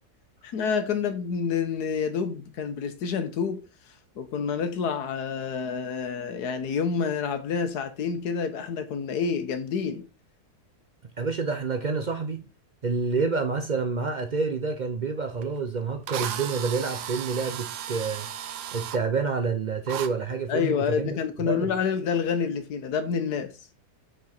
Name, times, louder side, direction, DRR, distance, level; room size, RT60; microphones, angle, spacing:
voice 1, 0.4-3.6 4.2-10.1 20.5-23.6, left 6 dB, 85° left, 1.5 m, -28 dB
voice 2, 11.2-12.5 12.8-18.3 18.7-21.2 21.4-21.7, right 4 dB, 55° right, 0.5 m, -28 dB
Drill, 15.4-15.5 16.1-19.0 19.9-20.1, right 10 dB, 90° right, 1.3 m, -35 dB
6.1 x 5.2 x 4.3 m
omnidirectional pair, 1.7 m